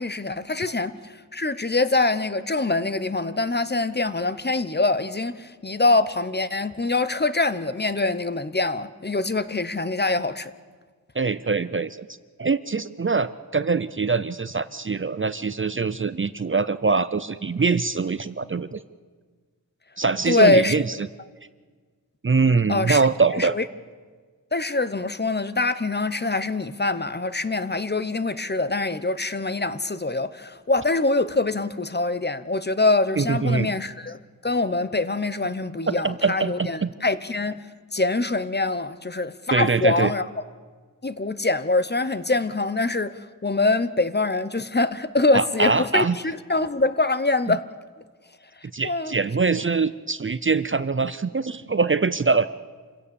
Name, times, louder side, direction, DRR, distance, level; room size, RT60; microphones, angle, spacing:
voice 1, 0.0-10.5 20.3-20.8 22.7-23.0 23.4-23.6 24.5-37.6 37.9-40.3 41.0-47.6 48.8-49.1, left 3 dB, 30° left, 0.8 m, -24 dB
voice 2, 11.2-12.1 12.4-18.8 20.0-20.9 22.2-23.5 33.2-33.7 35.9-36.9 39.5-40.1 45.3-46.2 47.5-47.6 48.7-52.5, right 4 dB, 35° right, 0.5 m, -23 dB
27.5 x 16.5 x 7.1 m
wide cardioid pair, 85°, 36 cm